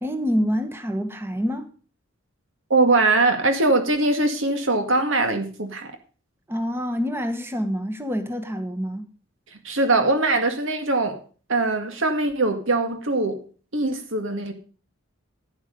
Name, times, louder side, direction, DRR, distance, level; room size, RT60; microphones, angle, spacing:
voice 1, 0.0-1.7 6.5-9.1, equal, 10° right, 1.2 m, -26 dB
voice 2, 2.7-5.9 9.6-11.2 11.5-13.4 13.7-14.5, right 2 dB, 70° right, 2.0 m, -21 dB
11.0 x 10.0 x 5.4 m
head